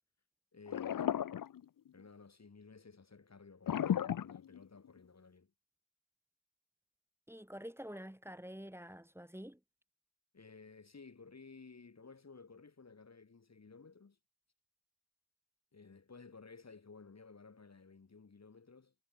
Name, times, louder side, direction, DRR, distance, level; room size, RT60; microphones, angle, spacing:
voice 1, 0.5-1.2 1.9-5.5 10.3-14.2 15.7-18.9, left 4 dB, 45° left, 2.5 m, -56 dB
sound 1, 0.7-2.0 3.7-5.0, left 9 dB, 60° left, 0.6 m, -35 dB
voice 2, 7.3-9.6, equal, 5° right, 2.8 m, -48 dB
wide cardioid pair, 100°, 38 cm